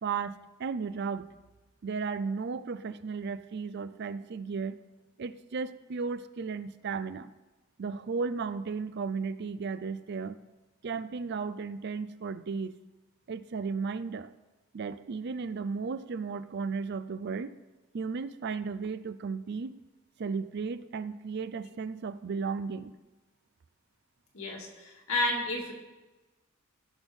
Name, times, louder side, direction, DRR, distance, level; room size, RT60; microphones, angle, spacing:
voice 1, 0.0-1.3 1.8-4.8 5.2-7.3 7.8-10.4 10.8-12.7 13.3-14.3 14.7-17.5 17.9-19.7 20.2-22.9, right 5 dB, 50° right, 13 dB, 0.4 m, -34 dB
voice 2, 24.3-25.7, left 2 dB, 75° left, -1 dB, 2.1 m, -31 dB
16.5 x 6.3 x 3.5 m, 1.1 s
head